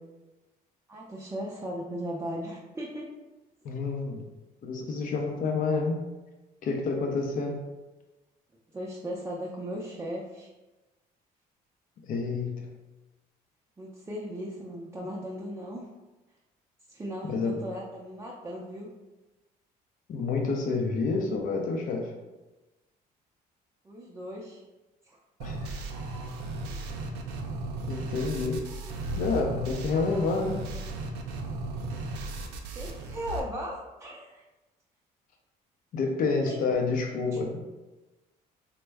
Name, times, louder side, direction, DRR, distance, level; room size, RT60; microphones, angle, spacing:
voice 1, 0.9-3.1 8.7-10.5 13.8-15.9 16.9-18.9 23.8-24.6 25.1-25.2 32.7-34.4 36.5-36.6, equal, 15° right, -4 dB, 0.4 m, -37 dB
voice 2, 3.6-4.2 4.6-6.0 6.6-7.6 12.1-12.7 17.2-17.6 20.1-22.1 25.4-25.7 27.9-28.7 29.2-30.6 35.9-37.6, left 4 dB, 55° left, 2 dB, 0.5 m, -29 dB
sound 1, 25.4-33.4, right 2 dB, 85° right, 0.5 m, -35 dB
3.3 x 2.1 x 3.3 m, 1.1 s
cardioid pair, 110°, 17 cm